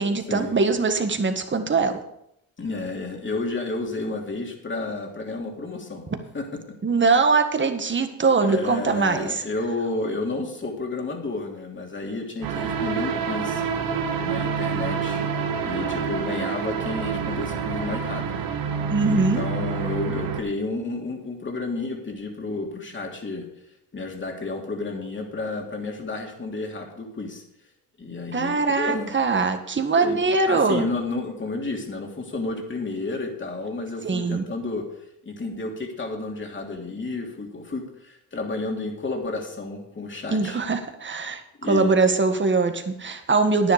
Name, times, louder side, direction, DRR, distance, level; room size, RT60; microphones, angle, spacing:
voice 1, 0.0-2.0 6.8-9.4 18.9-19.4 28.3-30.9 34.0-34.4 40.3-43.7, right 4 dB, 30° right, 7 dB, 1.7 m, -22 dB
voice 2, 2.6-6.0 6.3-6.8 8.4-13.6 14.2-15.2 15.6-18.5 19.0-23.4 23.9-27.4 28.0-29.1 29.8-30.2 30.5-34.8 35.2-40.6 41.6-42.1, left 3 dB, 30° left, 1 dB, 3.0 m, -31 dB
sound 1, 12.4-20.4, right 6 dB, 70° right, 1.5 m, -27 dB
10.0 x 10.0 x 5.1 m, 0.77 s
supercardioid pair, 75°, 36 cm